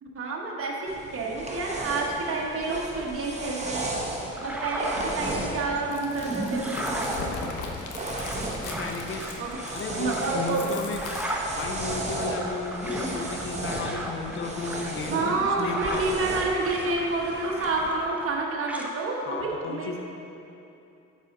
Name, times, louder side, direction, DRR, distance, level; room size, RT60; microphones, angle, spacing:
voice 1, 0.0-3.9 4.4-6.8 9.4-9.5 10.0-10.6 15.1-19.9, right 3 dB, 45° right, -2 dB, 1.1 m, -29 dB
sound 1, 0.9-17.9, right 2 dB, 20° right, 1.1 m, -35 dB
sound 2, 4.3-5.6 6.1-16.3 16.6-18.4 18.6-18.9, right 1 dB, 5° right, 0.8 m, -36 dB
Chewing mastication, 5.8-11.8, left 4 dB, 75° left, 1.0 m, -39 dB
voice 2, 8.6-9.2 9.7-11.0 11.5-16.0 19.3-20.0, left 4 dB, 45° left, 4 dB, 0.7 m, -34 dB
8.2 x 4.2 x 5.2 m, 2.8 s
cardioid pair, 90°, 30 cm